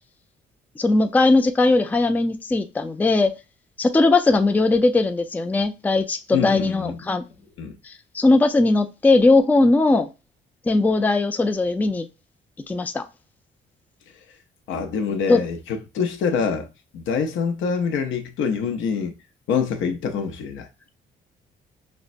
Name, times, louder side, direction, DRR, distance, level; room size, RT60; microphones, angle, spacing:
voice 1, 0.8-3.3 3.8-7.2 7.9-10.1 10.7-12.1 12.7-13.1 15.3-15.4, left 2 dB, 10° left, 0.3 m, -19 dB
voice 2, 6.3-7.0 7.6-7.7 14.7-16.7 16.9-19.1 19.5-20.7, left 6 dB, 80° left, 0.6 m, -25 dB
5.1 x 2.1 x 2.5 m
cardioid pair, 90°, 20 cm